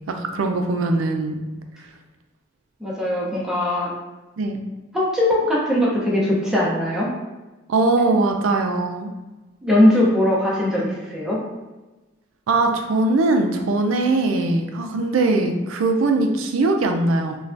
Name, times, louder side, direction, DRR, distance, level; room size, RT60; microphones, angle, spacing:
voice 1, 0.1-1.4 4.4-4.6 7.7-9.1 10.8-10.9 12.5-17.4, right 2 dB, 80° right, 5 dB, 0.4 m, -21 dB
voice 2, 2.8-3.9 4.9-7.1 9.6-11.4, left 1 dB, 5° right, -5 dB, 0.6 m, -20 dB
3.2 x 2.3 x 2.5 m, 1.1 s
head